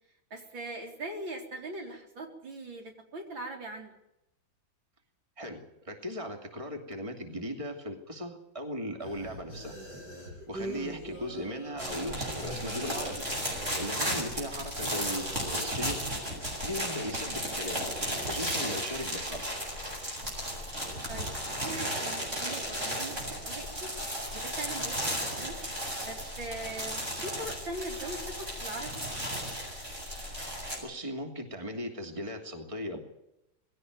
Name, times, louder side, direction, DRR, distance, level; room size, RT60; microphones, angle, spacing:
voice 1, 0.3-3.9 10.6-10.9 21.1-21.3 21.6-23.9 24.3-25.6 26.1-28.9, right 2 dB, 75° right, 2 dB, 4.7 m, -41 dB
voice 2, 5.4-9.7 10.5-13.2 13.7-16.0 16.6-17.8 18.3-19.4 30.8-33.0, equal, 15° right, 4 dB, 2.8 m, -38 dB
sound 1, 9.0-15.7, right 1 dB, 55° right, 8.8 m, -43 dB
sound 2, 11.8-30.8, equal, 35° right, 8.1 m, -35 dB
21.0 x 16.5 x 9.4 m, 0.87 s
omnidirectional pair, 2.1 m